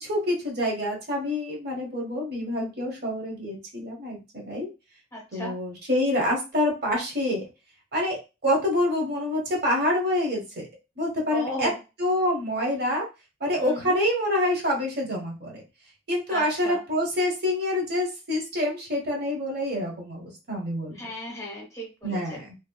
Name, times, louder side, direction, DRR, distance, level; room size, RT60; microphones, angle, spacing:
voice 1, 0.0-4.7 5.3-7.4 7.9-10.7 11.0-11.7 12.0-13.0 13.4-15.6 16.1-21.0 22.0-22.6, left 1 dB, 55° right, -1 dB, 0.9 m, -27 dB
voice 2, 5.1-5.5 11.3-11.8 13.6-13.8 16.3-16.8 21.0-22.2, equal, 15° left, -2 dB, 0.7 m, -34 dB
2.7 x 2.1 x 2.2 m, 0.28 s
head